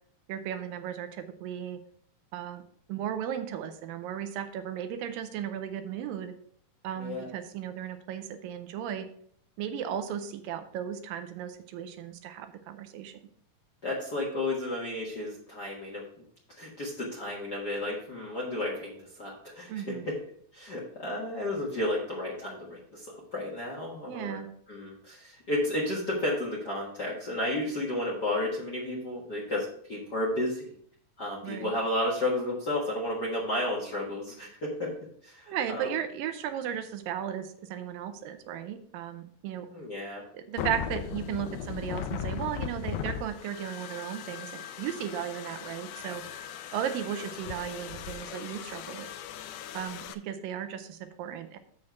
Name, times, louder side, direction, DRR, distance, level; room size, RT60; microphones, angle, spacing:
voice 1, 0.3-1.8 2.3-2.6 2.9-6.3 6.8-9.1 9.6-13.2 19.7-20.0 24.1-24.5 31.4-31.7 35.5-39.7 40.3-49.1 49.7-51.6, right 9 dB, 80° right, 9 dB, 2.3 m, -35 dB
voice 2, 7.0-7.3 13.8-16.0 16.6-20.2 20.5-23.1 23.3-30.7 31.2-34.9 35.2-35.9 39.7-40.2, left 1 dB, 50° left, -3 dB, 1.2 m, -32 dB
sound 1, 40.6-50.1, left 9 dB, 90° left, 1.7 m, -38 dB
7.3 x 6.4 x 4.4 m, 0.62 s
omnidirectional pair, 4.1 m